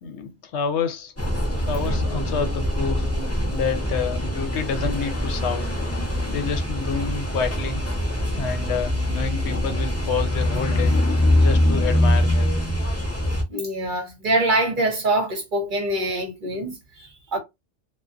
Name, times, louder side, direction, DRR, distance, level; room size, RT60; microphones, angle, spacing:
voice 1, 0.0-1.1 1.7-3.1 3.5-5.7 6.3-7.8 8.4-11.0 11.3-12.6, left 6 dB, 75° left, 0.8 m, -28 dB
sound 1, 1.2-13.4, left 1 dB, 15° left, 0.8 m, -23 dB
voice 2, 13.5-17.4, right 2 dB, 50° right, 0.8 m, -24 dB
2.5 x 2.2 x 2.4 m
omnidirectional pair, 1.2 m